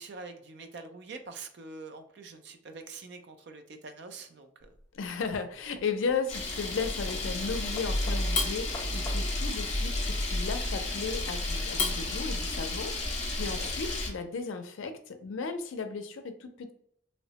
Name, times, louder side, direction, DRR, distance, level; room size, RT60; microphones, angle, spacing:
voice 1, 0.0-4.7 13.4-13.7, right 3 dB, 60° right, 7 dB, 0.4 m, -45 dB
sound 1, 4.6-10.3, left 2 dB, 15° left, 0.3 m, -49 dB
voice 2, 4.9-16.7, left 5 dB, 85° left, 7 dB, 0.4 m, -35 dB
Camera, 6.3-14.1, left 2 dB, 35° left, 0.7 m, -31 dB
3.0 x 2.0 x 2.8 m, 0.67 s
head